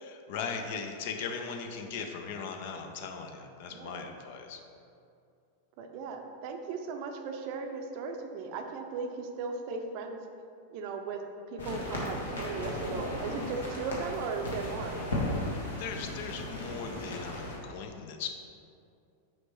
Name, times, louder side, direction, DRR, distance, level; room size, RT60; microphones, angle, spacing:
voice 1, 0.0-4.6 15.4-18.3, left 6 dB, 50° left, 4 dB, 0.6 m, -39 dB
voice 2, 3.7-4.0 5.8-10.2 10.7-11.2 11.5-15.0, right 4 dB, 45° right, 5 dB, 0.5 m, -37 dB
sound 1, 11.6-17.6, left 1 dB, 70° left, 1.2 m, -36 dB
6.1 x 5.1 x 3.1 m, 2.5 s
figure-of-eight pair, 90°, 0 cm